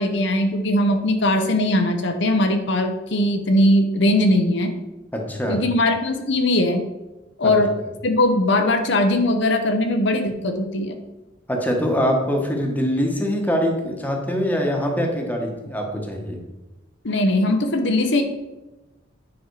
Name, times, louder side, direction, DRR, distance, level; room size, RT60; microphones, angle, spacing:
voice 1, 0.0-4.7 5.5-6.8 7.4-7.7 8.0-11.0 17.0-18.2, left 1 dB, 65° left, 5 dB, 0.8 m, -20 dB
voice 2, 5.1-5.6 7.4-7.5 11.5-16.4, equal, 10° left, 1 dB, 1.3 m, -23 dB
9.6 x 5.3 x 4.7 m, 1.1 s
head